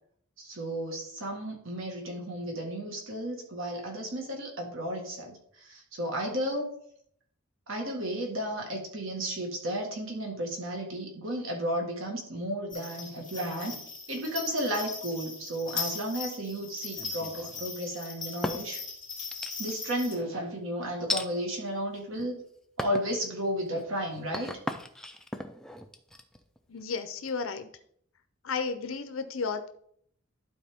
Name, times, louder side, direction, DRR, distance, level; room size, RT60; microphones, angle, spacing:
voice 1, 0.4-6.8 7.7-13.8 14.1-18.8 19.6-22.4 22.8-24.5, equal, 65° right, 1 dB, 1.6 m, -33 dB
sound 1, 12.7-20.1, left 4 dB, 20° left, 2.1 m, -39 dB
sound 2, 16.9-17.7 18.2-18.9 19.3-19.9 21.1-21.3 22.0-22.4 22.8-23.1 23.6-27.3, left 1 dB, 5° left, 0.4 m, -37 dB
voice 2, 26.7-27.7 28.4-29.7, left 4 dB, 75° left, 9 dB, 0.6 m, -33 dB
12.0 x 4.2 x 3.6 m, 0.67 s
head